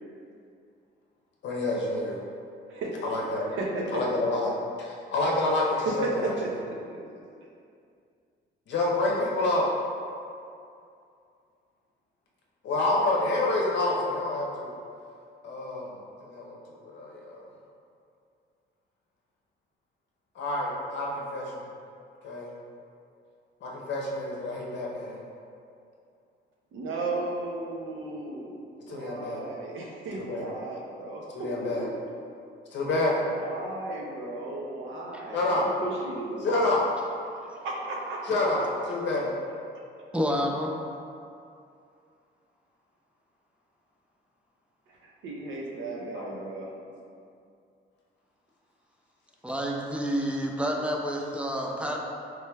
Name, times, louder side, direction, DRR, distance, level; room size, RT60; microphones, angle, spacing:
voice 1, 1.4-2.2 3.0-3.5 3.9-4.5 4.8-6.3 8.7-9.6 12.6-14.7 15.4-15.9 16.2-16.6 16.9-17.4 20.4-21.6 22.2-22.5 23.6-25.2 28.9-29.5 30.2-30.5 31.3-31.9 32.7-33.2 35.3-35.6 36.4-36.8 38.3-38.6 38.9-39.3 46.1-46.3, left 2 dB, 65° left, -2 dB, 0.7 m, -28 dB
voice 2, 3.5-4.0 5.8-6.3 6.7-7.0 26.7-28.6 28.9-31.2 31.6-31.9 33.2-36.5 37.6-38.4 44.9-46.7, right 2 dB, 80° right, -2 dB, 0.6 m, -35 dB
voice 3, 40.1-40.7 49.4-52.0, equal, 5° right, 0 dB, 0.4 m, -29 dB
3.2 x 2.2 x 3.3 m, 2.5 s
cardioid pair, 90°, 20 cm